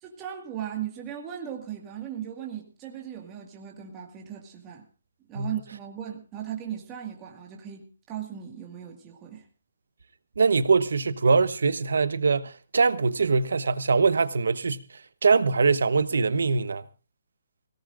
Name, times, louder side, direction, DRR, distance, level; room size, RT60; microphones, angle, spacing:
voice 1, 0.0-4.8 5.3-9.4, right 10 dB, 15° right, 1.9 m, -37 dB
voice 2, 10.4-14.8 15.2-16.8, right 4 dB, 80° right, 1.1 m, -23 dB
24.0 x 17.5 x 2.5 m
hypercardioid pair, 175°, 0 cm